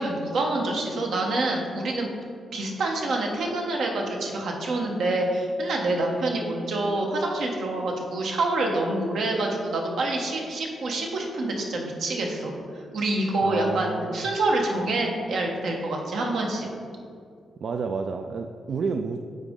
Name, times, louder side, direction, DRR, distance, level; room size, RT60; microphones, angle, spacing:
voice 1, 0.0-2.1 2.5-16.7, right 2 dB, 75° right, 0 dB, 1.1 m, -27 dB
voice 2, 13.4-14.3 17.6-19.2, right 5 dB, 55° right, 5 dB, 0.3 m, -30 dB
8.9 x 4.0 x 3.7 m, 2.3 s
cardioid pair, 100°, 0 cm